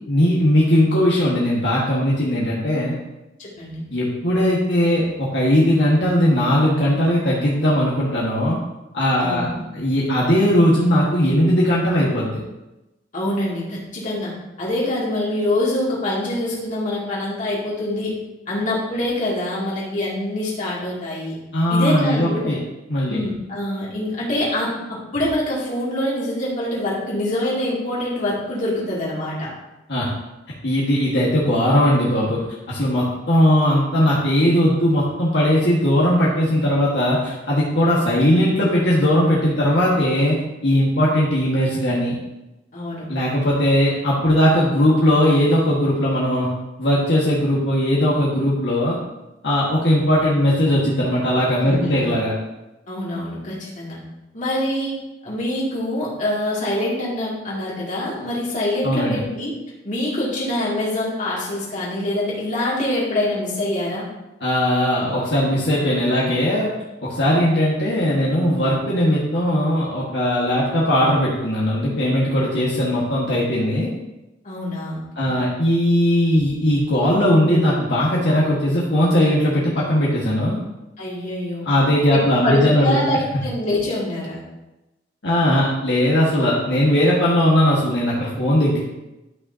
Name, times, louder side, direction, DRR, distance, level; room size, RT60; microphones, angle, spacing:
voice 1, 0.1-2.9 3.9-8.6 8.9-9.4 9.7-12.4 21.5-22.6 22.9-23.2 29.9-30.1 30.6-32.4 32.7-42.2 43.1-46.5 46.8-49.0 49.4-52.3 58.8-59.2 64.4-66.7 67.0-73.9 75.2-80.6 81.6-83.0 85.2-88.8, equal, 70° left, -6 dB, 1.6 m, -19 dB
voice 2, 3.4-3.8 9.2-9.6 13.1-14.3 14.6-18.1 18.5-21.4 21.7-22.5 23.1-29.5 42.7-43.1 51.6-52.1 52.9-54.0 54.3-54.9 55.2-59.5 59.8-64.1 74.4-75.4 81.0-81.7 82.1-84.4, left 1 dB, 45° left, -6 dB, 2.5 m, -25 dB
11.5 x 5.9 x 2.8 m, 1.0 s
head